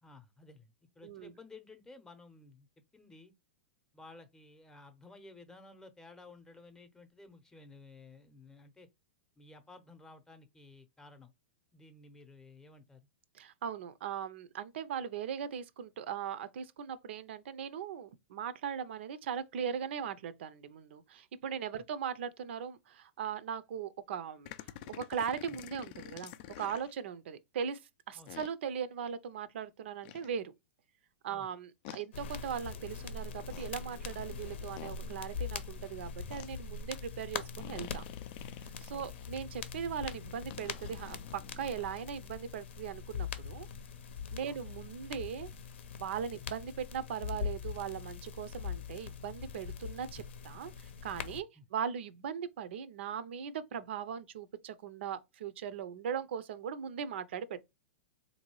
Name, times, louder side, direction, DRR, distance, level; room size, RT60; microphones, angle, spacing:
voice 1, 0.0-2.7 2.9-3.3 3.9-8.9 9.4-11.3 11.7-13.0 21.8-21.9 25.5-25.6 28.1-28.3 31.3-31.5 38.9-39.1 44.4-44.6 46.4-46.5 51.5-51.7, left 3 dB, 10° left, 0.7 m, -55 dB
voice 2, 13.3-24.5 24.9-26.3 26.6-27.8 28.1-30.5 31.2-38.0 38.8-43.7 44.3-45.5 46.0-57.6, right 8 dB, 70° right, 0.5 m, -39 dB
sound 1, 24.4-26.9 28.3-28.5 30.0-30.3 31.8-32.0 33.3-33.7 34.8-35.0 36.3-36.5 37.6-39.3 40.5-42.0, left 12 dB, 50° left, 0.4 m, -48 dB
sound 2, 32.1-51.4, left 6 dB, 75° left, 0.7 m, -42 dB
3.8 x 2.7 x 3.0 m
hypercardioid pair, 125°, 6 cm